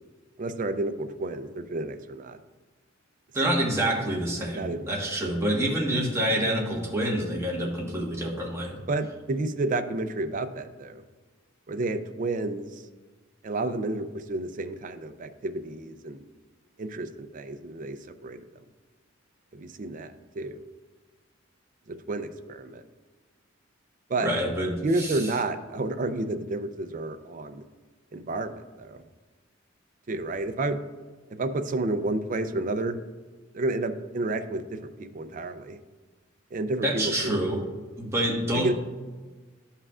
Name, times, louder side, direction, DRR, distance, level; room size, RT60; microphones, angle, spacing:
voice 1, 0.4-2.4 3.4-3.6 4.5-4.9 8.9-11.0 11.7-12.8 13.4-16.3 16.8-18.4 19.5-20.6 21.9-22.8 24.1-24.3 24.8-27.6 28.1-29.0 30.1-30.8 31.3-33.0 33.5-35.8 36.5-37.4 38.5-38.7, right 2 dB, 40° right, 9 dB, 0.4 m, -30 dB
voice 2, 3.3-8.8 24.2-25.3 36.8-37.6 38.0-38.7, right 1 dB, 15° right, -3 dB, 1.4 m, -27 dB
12.0 x 5.6 x 2.4 m, 1.3 s
head